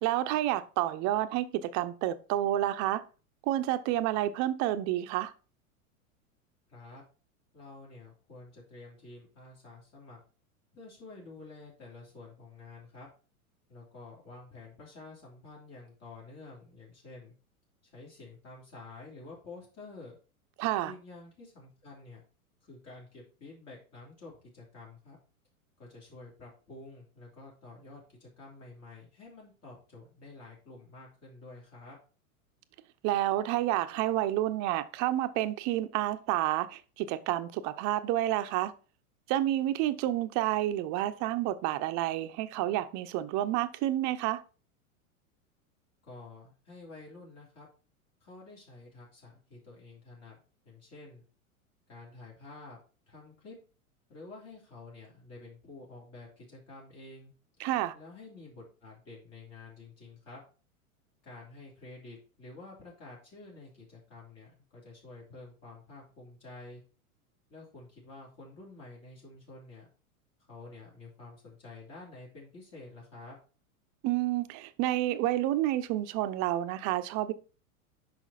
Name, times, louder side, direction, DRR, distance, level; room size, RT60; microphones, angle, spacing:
voice 1, 0.0-3.0 3.5-5.3 20.6-20.9 33.0-38.7 39.3-44.4 57.6-57.9 74.0-77.3, right 14 dB, 40° right, 0.8 m, -29 dB
voice 2, 6.7-7.0 7.5-10.2 10.7-13.1 13.7-17.3 17.8-20.2 20.8-22.2 22.6-25.2 25.8-32.0 46.0-47.7 48.2-51.2 51.9-52.8 53.1-53.5 54.1-57.3 57.9-60.4 61.2-66.8 67.5-69.9 70.5-73.4, left 3 dB, 35° left, 3.0 m, -50 dB
6.1 x 5.7 x 4.1 m
hypercardioid pair, 105°, 43 cm